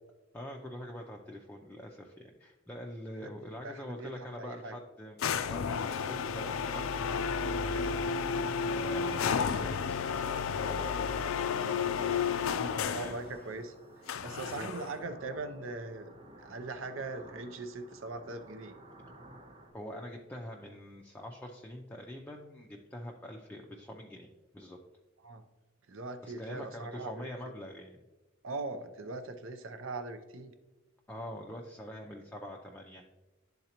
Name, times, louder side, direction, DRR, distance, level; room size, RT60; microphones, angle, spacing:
voice 1, 0.3-5.2 5.4-8.0 8.7-10.3 10.5-13.5 14.5-14.7 19.7-24.8 26.2-28.0 31.1-33.1, equal, 10° left, -1 dB, 0.4 m, -45 dB
voice 2, 3.6-4.8 12.9-13.7 14.2-16.1 16.4-18.8 25.2-25.4 25.9-27.3 28.4-30.5, right 3 dB, 75° right, 8 dB, 0.6 m, -40 dB
sound 1, 5.2-13.2 14.1-15.0, left 6 dB, 90° left, 0.4 m, -32 dB
sound 2, 5.8-19.7, right 1 dB, 30° right, 0.9 m, -54 dB
11.5 x 3.9 x 2.9 m, 1.1 s
head